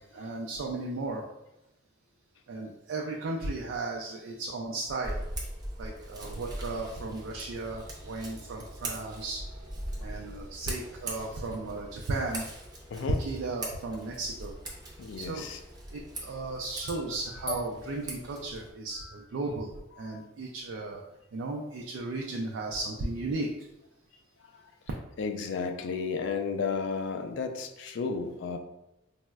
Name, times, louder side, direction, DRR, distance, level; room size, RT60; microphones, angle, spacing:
voice 1, 0.1-1.2 2.5-5.2 5.8-9.4 10.0-12.4 13.2-14.6 15.2-15.5 15.9-19.7 20.0-21.0 21.3-23.5, right 2 dB, 90° right, -1 dB, 0.3 m, -35 dB
Scissors, 5.0-18.7, right 1 dB, 20° right, 0.5 m, -41 dB
voice 2, 15.0-15.6 16.9-17.0 20.0-20.3 24.4-24.6 25.2-28.6, left 5 dB, 65° left, 6 dB, 0.3 m, -33 dB
sound 1, 15.8-16.1 17.4-18.8, left 3 dB, 25° left, 0.8 m, -40 dB
4.1 x 2.0 x 2.3 m, 0.91 s
head